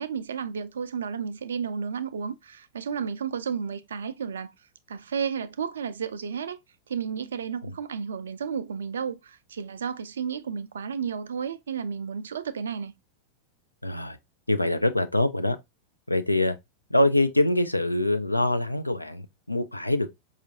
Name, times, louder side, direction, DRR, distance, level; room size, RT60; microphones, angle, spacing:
voice 1, 0.0-4.5 4.9-6.6 6.9-12.9, right 6 dB, 65° right, 0.4 m, -32 dB
voice 2, 13.8-14.2 14.5-15.6 16.1-16.6 16.9-20.1, left 1 dB, 85° left, 0.4 m, -24 dB
5.0 x 2.4 x 2.7 m
figure-of-eight pair, 90°, 0 cm